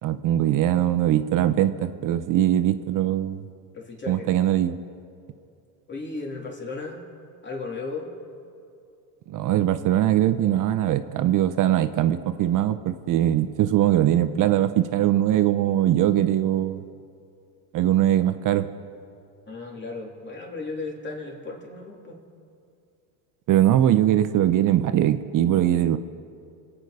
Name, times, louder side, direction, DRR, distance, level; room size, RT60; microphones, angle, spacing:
voice 1, 0.0-3.4 4.1-4.8 9.3-16.8 17.7-18.7 23.5-26.0, right 12 dB, 40° right, 11 dB, 0.7 m, -21 dB
voice 2, 3.7-4.3 5.9-7.0 7.4-8.1 19.5-22.2, left 3 dB, 20° left, 0 dB, 3.1 m, -35 dB
24.5 x 9.0 x 4.9 m, 2.5 s
supercardioid pair, 105°, 50 cm